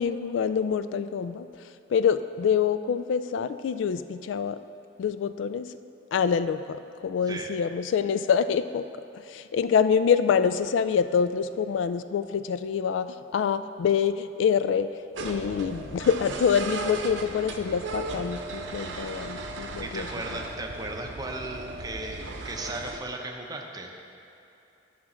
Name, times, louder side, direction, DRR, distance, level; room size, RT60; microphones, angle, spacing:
voice 1, 0.0-1.5 1.9-4.6 5.0-5.7 6.1-6.6 7.0-8.8 9.3-14.9 15.2-20.1, left 7 dB, 75° left, 12 dB, 0.3 m, -26 dB
sound 1, 15.1-23.0, right 3 dB, 75° right, 0.7 m, -36 dB
voice 2, 19.8-23.9, right 2 dB, 20° right, 1 dB, 0.7 m, -36 dB
11.0 x 5.8 x 4.3 m, 2.8 s
head